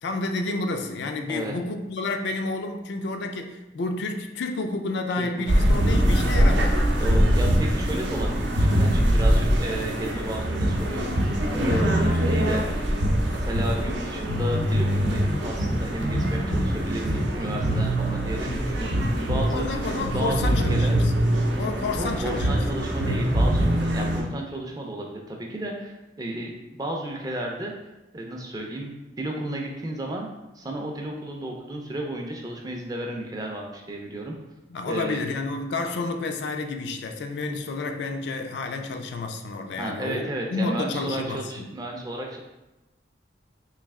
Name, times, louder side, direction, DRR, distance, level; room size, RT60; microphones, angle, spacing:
voice 1, 0.0-6.8 11.6-12.0 19.4-21.1 21.6-22.5 24.0-24.1 34.7-41.7, left 3 dB, 70° left, 5 dB, 0.4 m, -30 dB
sound 1, 5.5-24.2, equal, 80° right, 0.6 m, -23 dB
voice 2, 7.0-12.7 13.3-19.7 20.1-21.0 21.9-27.7 28.1-28.9 29.2-30.3 30.6-34.3 34.9-35.2 39.8-42.4, right 1 dB, 20° right, 1 dB, 0.4 m, -33 dB
3.2 x 2.7 x 3.5 m, 1.0 s
head